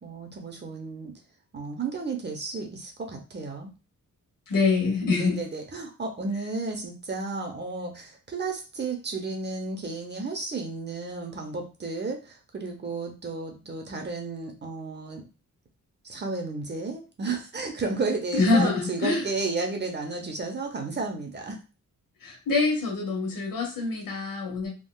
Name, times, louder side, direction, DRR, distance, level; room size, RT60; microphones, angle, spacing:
voice 1, 0.0-1.1 1.5-3.7 5.2-15.3 16.0-21.6, right 3 dB, 35° right, 3 dB, 0.7 m, -33 dB
voice 2, 4.5-5.4 18.3-19.2 22.2-24.7, left 3 dB, 90° left, 0 dB, 1.3 m, -25 dB
3.6 x 2.3 x 2.3 m, 0.31 s
wide cardioid pair, 135°, 33 cm